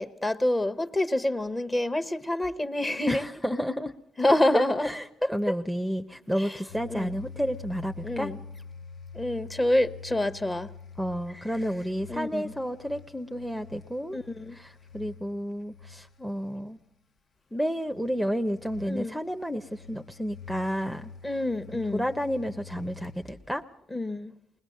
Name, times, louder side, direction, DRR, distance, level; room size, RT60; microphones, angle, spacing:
voice 1, 0.0-3.2 4.2-4.9 5.2-5.3 6.4-6.6 6.9-7.1 8.0-8.4 9.1-10.7 12.1-12.5 14.1-14.6 18.9-19.2 21.2-22.0 23.9-24.3, left 1 dB, 20° left, 1.0 m, -27 dB
voice 2, 3.1-3.9 4.5-8.3 11.0-14.2 14.5-16.8 17.5-21.1 21.7-23.6, equal, ahead, 0.7 m, -31 dB
sound 1, 6.7-16.7 17.9-23.4, left 5 dB, 50° left, 0.8 m, -47 dB
21.0 x 20.0 x 6.5 m
cardioid pair, 90°, 0 cm